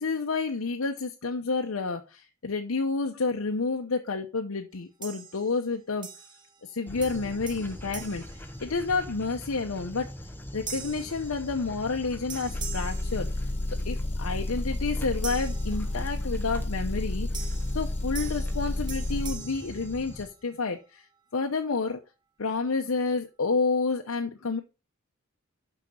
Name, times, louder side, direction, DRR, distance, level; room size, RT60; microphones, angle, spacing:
voice 1, 0.0-6.1 6.6-10.1 10.5-13.3 13.8-17.5 17.7-21.1 21.3-22.0 22.4-24.6, left 4 dB, 80° left, 3 dB, 0.8 m, -30 dB
sound 1, 5.0-5.7 6.0-6.7 7.0-9.2 9.7-10.0 10.7-12.0 12.3-13.9 15.2-16.4 17.3-20.6, right 6 dB, 20° right, 0.9 m, -44 dB
Dog, 6.9-20.2, left 1 dB, 10° left, 1.0 m, -42 dB
Motor vehicle (road) / Engine, 12.5-19.4, left 1 dB, 30° left, 0.6 m, -31 dB
6.2 x 5.8 x 5.7 m, 0.30 s
head